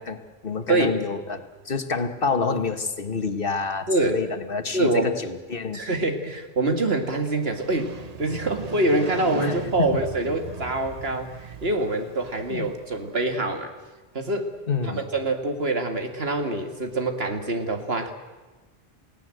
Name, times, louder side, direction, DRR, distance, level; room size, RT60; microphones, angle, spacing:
voice 1, 0.0-5.8 9.4-9.5 9.8-9.9 12.5-12.7 14.7-15.0, left 4 dB, 60° left, 8 dB, 1.6 m, -28 dB
voice 2, 3.9-4.2 4.7-5.1 5.7-13.7 14.1-14.5 14.8-18.1, right 2 dB, 70° right, 5 dB, 2.5 m, -25 dB
Motorcycle, 7.3-13.2, right 5 dB, 40° right, 1.0 m, -37 dB
29.5 x 17.5 x 7.8 m, 1.2 s
omnidirectional pair, 1.1 m